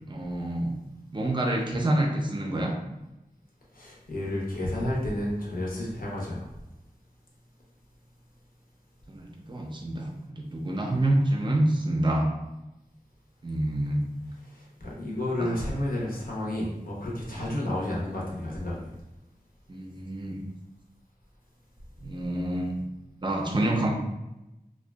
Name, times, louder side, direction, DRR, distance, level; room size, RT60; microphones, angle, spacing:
voice 1, 0.1-0.8 1.1-2.7 9.1-12.3 13.4-14.0 15.4-15.6 17.3-17.5 19.7-20.4 22.0-22.8 23.2-23.9, right 1 dB, 30° right, 0 dB, 0.5 m, -27 dB
voice 2, 3.7-6.5 14.5-18.9, left 1 dB, 65° left, -4 dB, 0.7 m, -31 dB
2.6 x 2.2 x 2.2 m, 0.95 s
wide cardioid pair, 60°, 16 cm